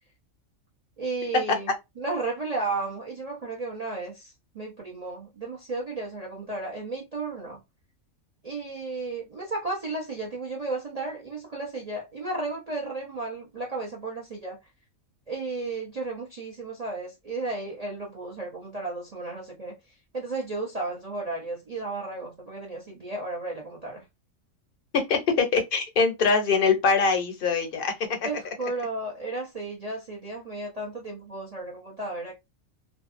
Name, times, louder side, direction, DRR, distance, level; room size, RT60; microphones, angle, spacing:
voice 1, 1.0-1.7 2.0-7.6 8.4-14.6 15.3-19.7 20.1-24.0 28.2-32.3, right 3 dB, 45° right, 0.5 m, -33 dB
voice 2, 24.9-27.9, left 4 dB, 55° left, 0.6 m, -23 dB
2.7 x 2.2 x 2.4 m
omnidirectional pair, 1.5 m